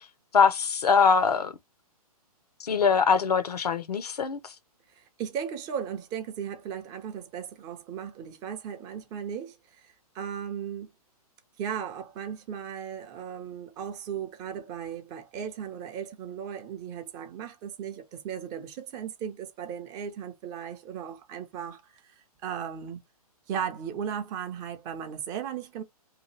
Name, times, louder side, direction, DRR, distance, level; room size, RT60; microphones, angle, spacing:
voice 1, 0.3-1.5 2.6-4.5, left 5 dB, 85° left, 0.6 m, -23 dB
voice 2, 4.9-10.9 11.6-23.0 23.5-25.8, right 8 dB, 20° right, 0.4 m, -36 dB
2.8 x 2.2 x 3.0 m
hypercardioid pair, 135°, 20 cm